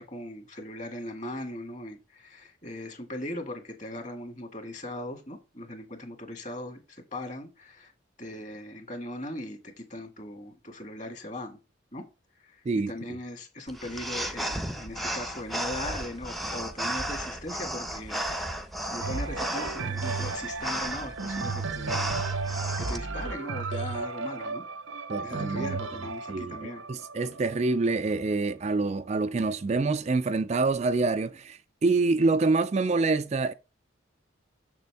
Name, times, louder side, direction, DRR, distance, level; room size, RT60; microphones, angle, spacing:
voice 1, 0.0-7.9 8.2-11.6 11.9-12.0 12.4-18.2 18.8-22.2 22.5-24.6 25.1-26.8, left 1 dB, 35° left, 1.8 m, -39 dB
sound 1, 13.7-23.0, right 1 dB, ahead, 0.6 m, -34 dB
sound 2, 19.0-28.8 29.4-29.5, right 4 dB, 80° right, 0.8 m, -34 dB
voice 2, 25.1-25.8 26.3-33.5, right 3 dB, 35° right, 0.3 m, -26 dB
7.0 x 6.7 x 3.5 m
head